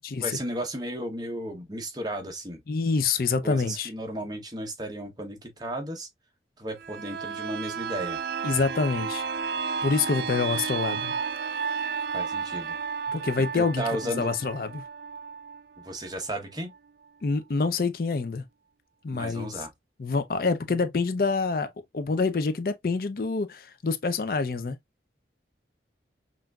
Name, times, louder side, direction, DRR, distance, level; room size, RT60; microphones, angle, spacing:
voice 1, 0.2-2.6 3.4-6.1 6.6-8.2 12.1-12.8 13.4-14.3 15.8-16.7 19.1-19.7, right 1 dB, 25° right, 0.9 m, -34 dB
voice 2, 2.7-3.9 8.4-9.2 9.6-11.1 13.1-14.8 17.2-18.4 19.0-19.6 20.0-24.8, left 4 dB, 55° left, 0.5 m, -27 dB
sound 1, 6.8-16.4 16.7-16.8, right 6 dB, 60° right, 0.4 m, -32 dB
5.7 x 2.5 x 2.3 m
head